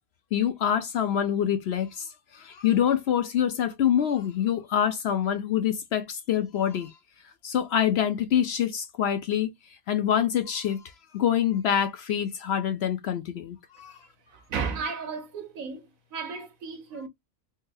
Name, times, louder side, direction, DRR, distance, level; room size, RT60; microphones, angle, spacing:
voice 1, 0.3-2.1 2.3-6.9 7.4-9.5 9.9-10.8 11.1-14.0, left 9 dB, 65° left, 0.7 m, -25 dB
voice 2, 14.3-17.1, right 5 dB, 80° right, 1.3 m, -34 dB
3.8 x 2.7 x 2.5 m
omnidirectional pair, 1.4 m